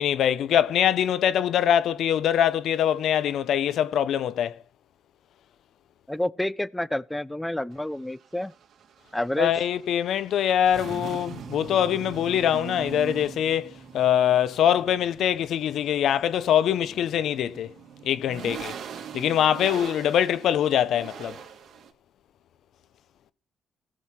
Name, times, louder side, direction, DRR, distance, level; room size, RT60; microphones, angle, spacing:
voice 1, 0.0-4.6 9.4-17.7 18.0-18.7 19.1-21.4, left 10 dB, 75° left, 0.7 m, -23 dB
voice 2, 6.1-8.5 9.1-9.5, left 1 dB, 5° left, 0.6 m, -28 dB
sound 1, 7.7-21.9, right 7 dB, 65° right, 2.6 m, -42 dB
17.0 x 6.5 x 4.3 m
cardioid pair, 90°, 0 cm